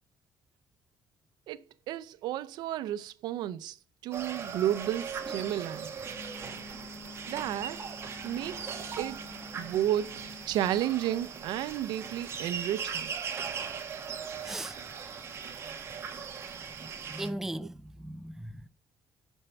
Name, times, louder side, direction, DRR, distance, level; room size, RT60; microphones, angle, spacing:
voice 1, 1.5-3.8 4.0-5.9 7.3-7.8 8.2-9.2 9.6-13.1, right 12 dB, 85° right, 0.7 m, -32 dB
sound 1, 4.1-17.3, right 6 dB, 35° right, 1.5 m, -39 dB
Wind instrument woodwind instrument, 6.1-10.5, left 3 dB, 35° left, 1.2 m, -48 dB
voice 2, 14.4-14.8 16.6-18.7, right 1 dB, 5° right, 0.3 m, -39 dB
7.1 x 5.5 x 6.9 m
cardioid pair, 140°, 7 cm